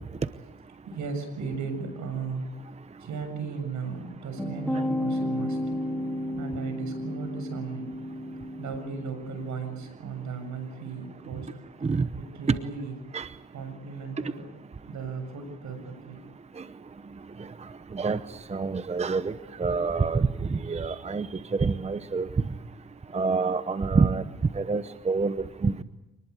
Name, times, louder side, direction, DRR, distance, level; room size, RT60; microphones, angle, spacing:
voice 1, 0.9-2.5 3.0-5.8 6.4-7.9 8.6-11.5 12.2-12.9 13.5-14.4 14.9-16.2, right 5 dB, 70° right, 8 dB, 7.2 m, -36 dB
sound 1, 4.4-9.9, equal, 5° left, 2.9 m, -32 dB
voice 2, 18.5-19.3 19.6-21.3 21.5-22.3 23.1-24.2 24.5-25.8, right 4 dB, 20° right, 13 dB, 0.8 m, -26 dB
26.0 x 20.0 x 8.5 m, 0.98 s
cardioid pair, 90°, 30 cm